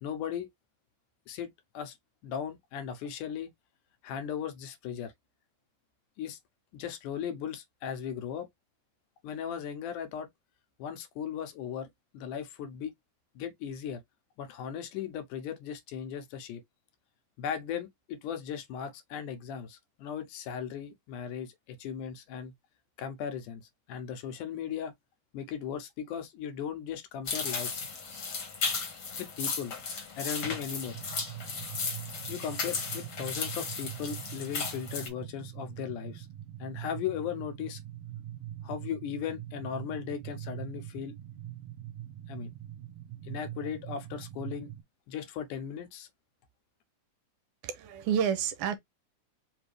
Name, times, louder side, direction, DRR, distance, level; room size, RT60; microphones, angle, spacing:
voice 1, 0.0-0.5 1.3-1.5 1.7-1.9 2.2-3.5 4.0-5.1 6.2-6.4 6.7-8.5 9.2-10.3 10.8-11.9 12.1-12.9 13.4-14.0 14.4-16.6 17.4-22.5 23.0-23.6 23.9-24.9 25.3-27.8 29.2-29.7 30.2-31.0 32.3-36.3 36.6-37.8 38.6-41.1 42.3-42.5 43.2-44.7 45.1-46.1, left 8 dB, 80° left, 2.3 m, -37 dB
sound 1, 27.2-35.1, left 4 dB, 45° left, 1.4 m, -35 dB
sound 2, 30.9-44.8, right 12 dB, 60° right, 1.9 m, -43 dB
voice 2, 47.6-48.8, right 8 dB, 80° right, 2.0 m, -29 dB
5.2 x 2.7 x 3.2 m
omnidirectional pair, 3.7 m